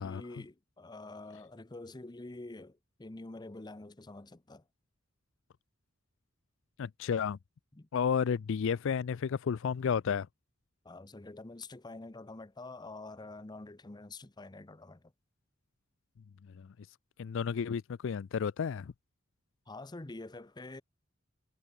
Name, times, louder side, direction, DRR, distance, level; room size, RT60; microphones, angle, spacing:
voice 1, 0.0-4.6 7.7-7.9 10.8-15.1 19.7-20.8, left 2 dB, 20° left, 0.7 m, -47 dB
voice 2, 6.8-7.4 7.9-10.3 16.6-16.7 17.2-18.9, left 6 dB, 65° left, 0.4 m, -32 dB
head